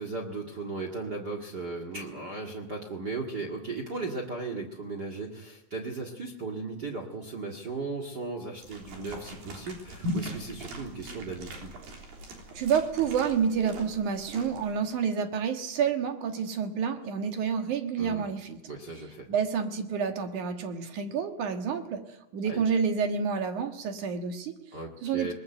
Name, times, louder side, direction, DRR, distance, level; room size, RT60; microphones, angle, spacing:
voice 1, 0.0-11.7 18.0-18.2 18.7-19.3 22.5-22.6 24.7-25.3, right 3 dB, 35° right, 2 dB, 2.0 m, -36 dB
sound 1, 8.6-14.9, equal, 80° right, 5.2 m, -40 dB
voice 2, 12.5-18.6 19.3-24.6 25.0-25.3, right 6 dB, 65° right, 6 dB, 2.9 m, -29 dB
20.5 x 20.5 x 7.9 m, 0.93 s
omnidirectional pair, 4.0 m